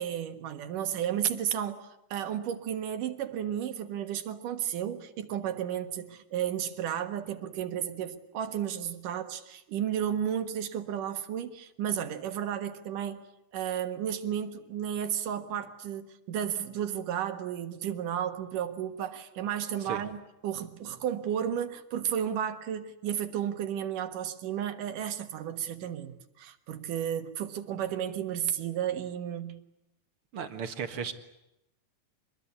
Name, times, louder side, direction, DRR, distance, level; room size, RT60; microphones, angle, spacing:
voice 1, 0.0-13.2 13.5-29.6, right 9 dB, 80° right, 8 dB, 3.1 m, -33 dB
voice 2, 30.3-31.1, right 7 dB, 50° right, 8 dB, 2.1 m, -35 dB
25.5 x 21.0 x 9.8 m, 0.88 s
omnidirectional pair, 3.7 m